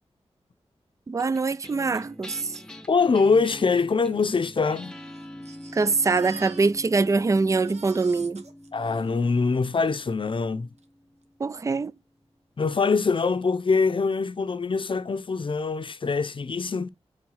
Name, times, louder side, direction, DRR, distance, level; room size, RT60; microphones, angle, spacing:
voice 1, 1.1-2.6 5.7-8.4 11.4-11.9, right 4 dB, 30° right, 0.4 m, -24 dB
sound 1, 1.2-11.8, left 1 dB, 5° left, 0.8 m, -45 dB
voice 2, 2.9-4.9 8.7-10.7 12.6-16.9, left 4 dB, 50° left, 0.7 m, -24 dB
Crying sobbing, 3.1-3.2 3.4-3.5 4.2-7.1 7.4-10.0 10.8-10.9 11.2-11.3, right 4 dB, 75° right, 1.1 m, -49 dB
4.9 x 4.1 x 5.6 m
wide cardioid pair, 80°, 11 cm